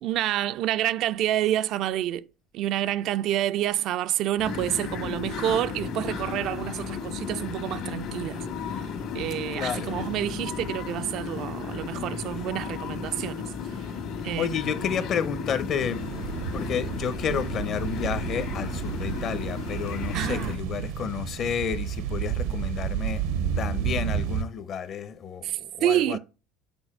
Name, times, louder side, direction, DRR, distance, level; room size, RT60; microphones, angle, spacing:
voice 1, 0.0-2.3 2.5-8.4 8.7-8.9 9.1-13.4 14.2-15.1 20.1-20.5 25.4-26.2, right 12 dB, 60° right, 0.3 m, -28 dB
sound 1, 4.4-20.6, left 6 dB, 70° left, 1.8 m, -34 dB
voice 2, 9.6-9.9 14.4-16.0 16.5-23.2 23.6-26.2, left 8 dB, 50° left, 0.8 m, -31 dB
sound 2, 15.7-24.4, right 8 dB, 85° right, 0.8 m, -31 dB
7.1 x 4.1 x 4.4 m
supercardioid pair, 95°, 0 cm